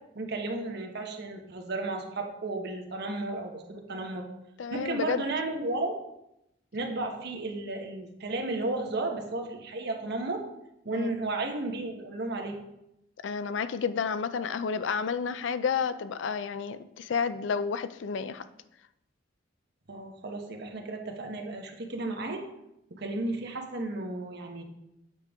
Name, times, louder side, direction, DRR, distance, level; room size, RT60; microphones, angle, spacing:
voice 1, 0.1-4.3 4.7-5.9 6.7-10.4 10.8-12.6 19.9-22.4 22.9-24.6, right 2 dB, 60° right, 3 dB, 1.1 m, -33 dB
voice 2, 4.6-5.2 10.9-11.2 13.2-18.4, left 6 dB, 70° left, 13 dB, 0.4 m, -31 dB
8.3 x 5.1 x 3.5 m, 0.84 s
head